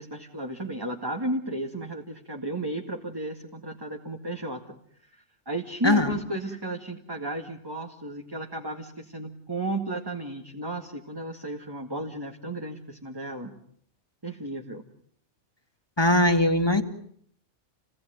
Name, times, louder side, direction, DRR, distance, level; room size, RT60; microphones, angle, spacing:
voice 1, 0.0-4.8 5.0-13.6 14.2-14.9, right 1 dB, 20° right, 2 dB, 2.1 m, -34 dB
voice 2, 5.8-6.1 16.0-16.8, left 1 dB, 20° left, 6 dB, 2.2 m, -20 dB
29.5 x 19.5 x 9.5 m, 0.66 s
omnidirectional pair, 1.2 m